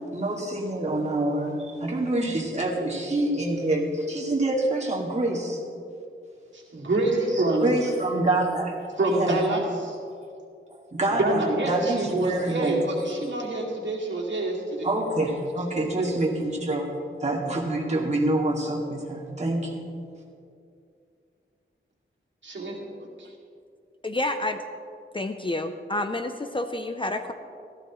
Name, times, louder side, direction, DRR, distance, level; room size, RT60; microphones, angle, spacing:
voice 1, 0.1-5.6 7.6-8.8 9.1-9.4 10.7-12.8 14.8-16.9 17.2-19.8, right 2 dB, 35° right, -3 dB, 2.3 m, -26 dB
voice 2, 6.5-7.7 9.0-10.0 11.1-14.9 15.8-16.1 22.4-22.8 23.2-23.3, right 2 dB, 65° right, -3 dB, 2.5 m, -26 dB
voice 3, 24.0-24.6 25.1-27.3, left 2 dB, 25° left, 7 dB, 0.6 m, -29 dB
17.0 x 14.0 x 3.1 m, 2.5 s
wide cardioid pair, 120°, 21 cm